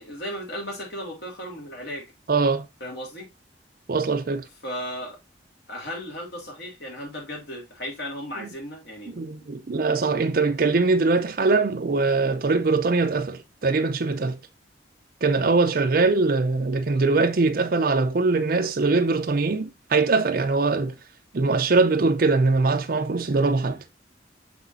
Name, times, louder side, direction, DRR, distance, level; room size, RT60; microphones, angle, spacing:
voice 1, 0.0-2.1 2.8-3.3 4.6-5.2 5.7-9.5, equal, 65° left, 3.3 m, -35 dB
voice 2, 2.3-2.7 3.9-4.5 8.4-8.5 9.2-14.4 15.2-20.9 21.3-23.8, right 3 dB, 55° right, 0.5 m, -22 dB
6.4 x 6.0 x 2.6 m
head